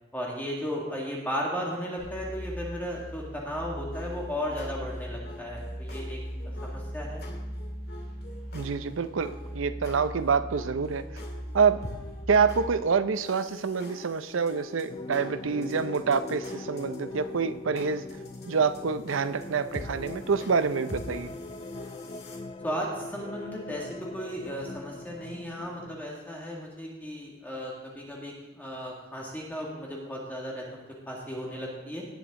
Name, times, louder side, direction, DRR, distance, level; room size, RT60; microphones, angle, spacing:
voice 1, 0.1-6.2 6.6-7.2 22.6-32.0, equal, 10° left, -3 dB, 2.0 m, -35 dB
sound 1, 2.0-12.6, equal, 35° right, 3.8 m, -39 dB
sound 2, 3.9-22.4, left 1 dB, 55° left, 2.3 m, -45 dB
voice 2, 8.5-11.0 11.5-11.8 12.3-18.0 18.5-21.3, right 5 dB, 85° right, 12 dB, 0.6 m, -27 dB
sound 3, 14.9-26.1, left 2 dB, 25° left, 0.3 m, -41 dB
18.5 x 7.0 x 3.7 m, 1.2 s
head